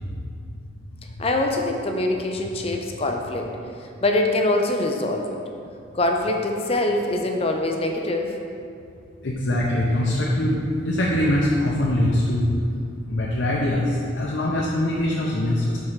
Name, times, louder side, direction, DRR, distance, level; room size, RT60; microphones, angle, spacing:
voice 1, 1.2-3.5 4.0-5.4 5.9-8.4, left 2 dB, 30° left, 3 dB, 0.5 m, -23 dB
voice 2, 9.2-12.6 13.1-15.8, left 1 dB, 70° left, -4 dB, 0.7 m, -22 dB
4.9 x 4.5 x 5.6 m, 2.4 s
head